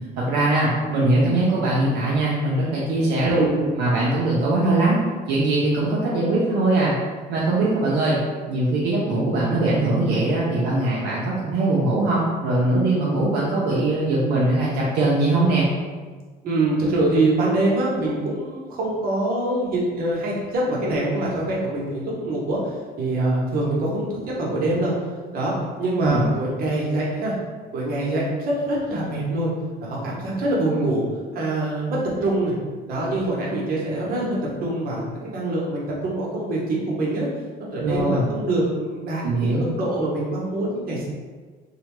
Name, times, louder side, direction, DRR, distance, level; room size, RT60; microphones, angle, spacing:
voice 1, 0.2-3.5 3.8-5.0 5.3-6.9 7.3-8.2 8.5-15.7 26.0-26.3 37.8-38.3 39.2-39.6, right 2 dB, 80° right, -6 dB, 0.5 m, -21 dB
voice 2, 3.3-3.7 16.4-22.7 23.0-24.9 25.3-25.5 25.8-27.4 27.7-29.5 29.8-31.0 31.3-32.5 32.9-37.3 37.6-41.1, right 2 dB, 60° right, -4 dB, 0.9 m, -24 dB
2.7 x 2.1 x 3.0 m, 1.4 s
cardioid pair, 110°, 17 cm